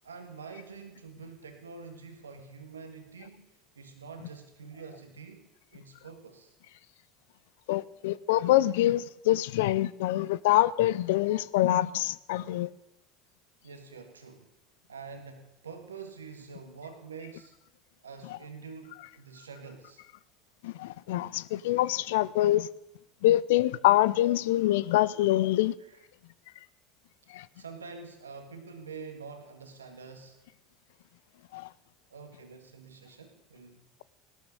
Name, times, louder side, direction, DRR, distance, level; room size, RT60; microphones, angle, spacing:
voice 1, 0.0-6.5 13.6-14.5 14.9-17.6 18.0-20.0 22.5-22.6 25.8-26.0 27.4-30.4 32.1-33.9, right 5 dB, 85° right, 1.7 m, -46 dB
voice 2, 7.7-12.7 20.6-22.7 23.2-25.7 27.3-27.5 31.5-31.7, left 15 dB, 70° left, 0.5 m, -25 dB
16.5 x 12.5 x 6.7 m
hypercardioid pair, 70°, 0 cm